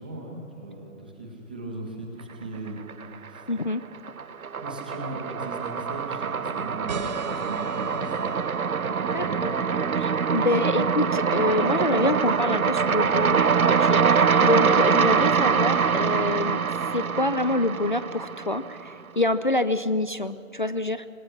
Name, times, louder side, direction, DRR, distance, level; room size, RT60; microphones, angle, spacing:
voice 1, 0.0-3.5 4.6-8.2 9.0-9.6, right 2 dB, 5° right, -1 dB, 0.7 m, -38 dB
sound 1, 2.7-3.4 3.7-18.9, right 6 dB, 90° right, 0.6 m, -24 dB
voice 2, 3.5-3.8 9.1-9.5 10.0-16.6 16.9-21.1, left 2 dB, 40° left, 10 dB, 0.5 m, -26 dB
sound 2, 6.9-12.1, right 3 dB, 30° right, 1.2 m, -40 dB
25.5 x 20.0 x 5.9 m, 2.5 s
figure-of-eight pair, 145°, 41 cm